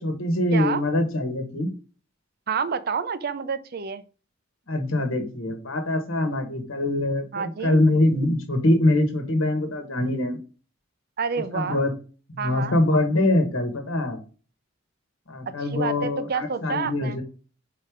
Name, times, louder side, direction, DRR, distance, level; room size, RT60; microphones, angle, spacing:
voice 1, 0.0-1.7 4.7-10.4 11.5-11.9 12.3-14.2 15.3-17.2, left 1 dB, 80° left, 1.4 m, -23 dB
voice 2, 2.5-4.0 7.3-7.8 11.2-11.8 12.4-12.8 15.5-17.2, right 5 dB, 50° right, 0.5 m, -29 dB
5.4 x 3.9 x 5.0 m
head